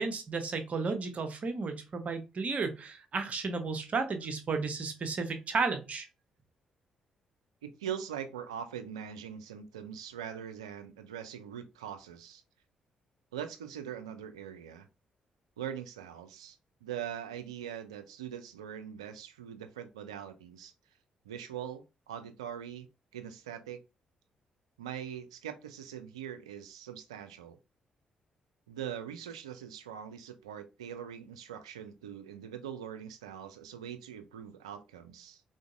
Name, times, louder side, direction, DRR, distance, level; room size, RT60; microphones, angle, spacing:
voice 1, 0.0-6.1, right 4 dB, 50° right, 0.8 m, -33 dB
voice 2, 7.6-12.4 13.3-14.9 15.6-20.7 21.3-22.9 23.1-23.8 24.8-27.6 28.7-35.4, right 9 dB, 90° right, 0.3 m, -42 dB
3.8 x 2.5 x 2.4 m
hypercardioid pair, 40°, 3 cm